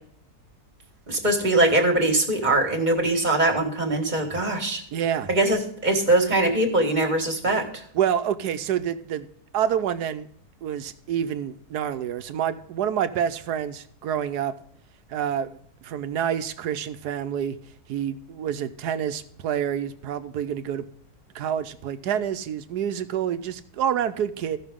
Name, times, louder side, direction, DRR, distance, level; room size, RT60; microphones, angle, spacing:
voice 1, 1.1-4.8 5.3-7.8, right 2 dB, 30° right, 3 dB, 1.8 m, -22 dB
voice 2, 4.9-5.3 7.9-9.3 9.5-10.3 10.6-14.5 15.1-17.6 17.9-20.8 21.3-24.6, right 9 dB, 85° right, 11 dB, 1.3 m, -27 dB
15.5 x 6.2 x 3.7 m, 0.63 s
omnidirectional pair, 1.7 m